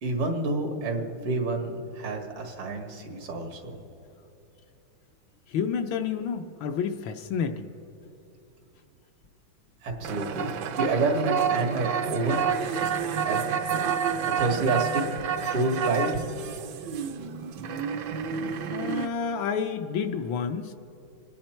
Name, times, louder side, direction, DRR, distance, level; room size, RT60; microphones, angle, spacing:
voice 1, 0.0-3.8 9.8-10.5 10.8-12.4 13.2-13.4 14.2-15.2 15.5-16.3, right 2 dB, 85° right, 2 dB, 2.6 m, -28 dB
voice 2, 5.5-7.7 18.7-20.7, left 6 dB, 70° left, 7 dB, 1.3 m, -29 dB
sound 1, 10.0-19.1, right 7 dB, 65° right, 1.1 m, -29 dB
27.0 x 10.0 x 4.4 m, 2.9 s
omnidirectional pair, 2.3 m